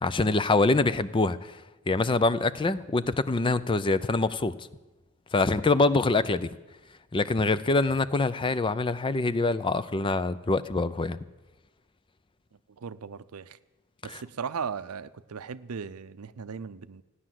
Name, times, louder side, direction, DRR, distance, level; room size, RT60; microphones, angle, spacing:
voice 1, 0.0-1.6 1.9-4.5 5.3-6.5 7.1-11.2 14.1-14.2, left 3 dB, 25° left, 15 dB, 0.5 m, -25 dB
voice 2, 12.8-13.6 14.0-17.0, right 6 dB, 85° right, 15 dB, 0.6 m, -37 dB
15.5 x 9.9 x 7.6 m, 1.1 s
head